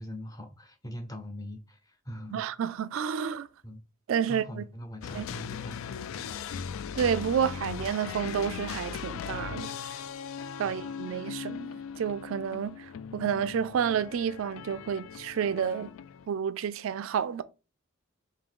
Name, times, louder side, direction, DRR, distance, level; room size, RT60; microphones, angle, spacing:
voice 1, 0.0-2.4 3.6-3.8 4.3-6.2 10.6-10.8, left 1 dB, 15° left, 0.6 m, -42 dB
voice 2, 2.3-3.5 4.1-4.6 5.1-5.3 7.0-9.7 10.6-15.9 16.3-17.4, right 7 dB, 75° right, 0.3 m, -30 dB
sound 1, 5.0-16.3, left 7 dB, 75° left, 0.3 m, -39 dB
3.7 x 2.7 x 3.6 m
head